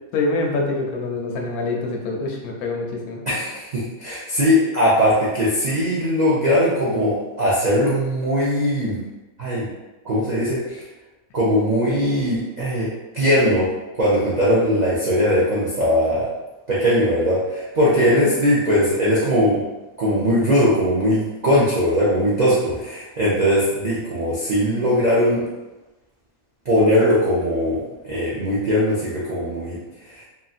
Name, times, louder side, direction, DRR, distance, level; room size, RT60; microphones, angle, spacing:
voice 1, 0.1-3.2 18.0-18.1, left 3 dB, 90° left, 1 dB, 1.1 m, -25 dB
voice 2, 3.3-9.0 9.4-9.7 10.0-10.8 11.3-12.9 13.1-13.7 14.0-16.3 16.7-19.6 20.0-25.4 26.7-27.8 28.0-29.8 30.1-30.2, equal, 70° right, -8 dB, 0.4 m, -20 dB
2.9 x 2.6 x 2.4 m, 1.1 s
omnidirectional pair, 1.6 m